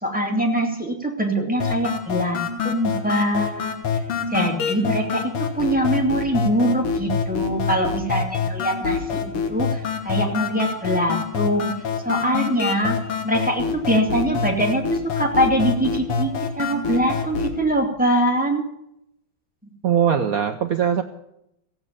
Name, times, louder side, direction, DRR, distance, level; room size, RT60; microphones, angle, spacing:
voice 1, 0.0-3.8 4.3-11.8 12.0-13.0 13.2-18.7, right 1 dB, 5° right, 1 dB, 2.3 m, -23 dB
sound 1, 1.6-17.6, left 6 dB, 90° left, 2.4 m, -26 dB
voice 2, 19.8-21.0, right 8 dB, 70° right, 7 dB, 0.8 m, -20 dB
15.5 x 8.6 x 8.3 m, 0.79 s
omnidirectional pair, 2.4 m